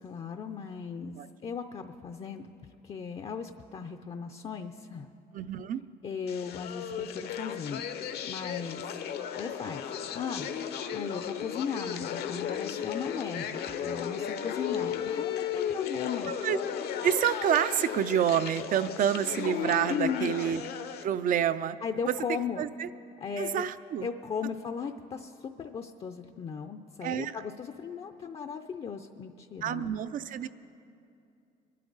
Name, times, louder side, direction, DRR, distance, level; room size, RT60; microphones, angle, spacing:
voice 1, 0.0-2.5 2.8-5.1 6.0-7.8 8.2-8.9 9.4-9.8 10.1-10.5 10.9-16.3 19.9-20.3 21.8-22.7 23.2-23.6 24.0-29.9, left 6 dB, 35° left, 7 dB, 0.5 m, -37 dB
voice 2, 5.3-5.8 16.3-16.6 17.0-20.6 21.0-21.8 22.1-22.2 22.6-22.9 23.4-24.1 27.0-27.3 29.6-30.5, right 9 dB, 55° right, 14 dB, 0.5 m, -28 dB
sound 1, 6.3-21.0, left 8 dB, 70° left, 0.8 m, -35 dB
23.0 x 11.5 x 4.0 m, 2.6 s
cardioid pair, 110°, 17 cm